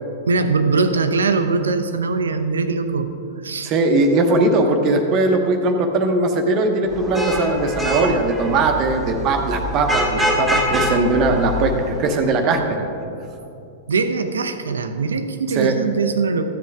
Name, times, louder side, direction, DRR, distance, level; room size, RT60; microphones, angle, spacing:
voice 1, 0.3-3.2 3.4-3.8 13.9-16.4, right 4 dB, 70° right, 9 dB, 0.6 m, -21 dB
voice 2, 3.6-12.8 15.5-15.8, right 2 dB, 35° right, 4 dB, 0.9 m, -19 dB
Vehicle horn car horn honking / Traffic noise roadway noise, 6.9-12.2, left 1 dB, 5° right, 1.5 m, -24 dB
14.0 x 7.6 x 3.5 m, 2.7 s
figure-of-eight pair, 100°, 0 cm